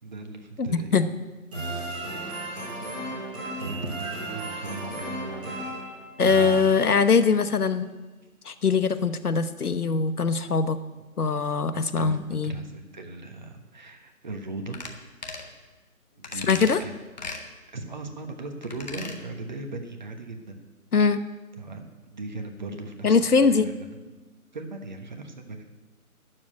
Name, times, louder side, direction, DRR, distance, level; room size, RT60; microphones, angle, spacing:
voice 1, 0.0-0.9 3.6-5.6 11.7-14.8 16.2-16.9 17.7-20.6 21.6-23.2 23.5-23.9 24.5-25.6, right 2 dB, 30° right, 5 dB, 1.3 m, -38 dB
sound 1, 1.5-7.2, right 1 dB, 5° right, 1.0 m, -34 dB
voice 2, 6.2-7.9 8.4-10.8 11.2-12.5 16.5-16.8 20.9-21.2 23.0-23.7, left 5 dB, 75° left, 12 dB, 1.1 m, -22 dB
sound 2, 14.7-14.9 15.2-15.5 16.2-16.8 17.2-17.4 18.6-19.2 19.5-19.6, left 3 dB, 30° left, 1.1 m, -37 dB
12.0 x 7.3 x 8.9 m, 1.2 s
figure-of-eight pair, 160°, 45 cm